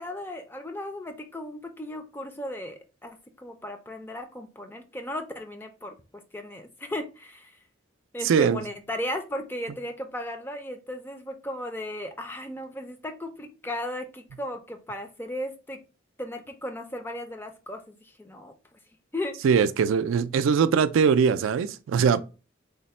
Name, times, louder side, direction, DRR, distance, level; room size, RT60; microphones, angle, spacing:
voice 1, 0.0-7.6 8.1-15.8 16.2-18.8 19.1-19.6, left 1 dB, 10° left, 0.4 m, -36 dB
voice 2, 8.2-8.6 19.4-22.2, right 6 dB, 85° right, 0.3 m, -21 dB
3.3 x 2.1 x 4.1 m
head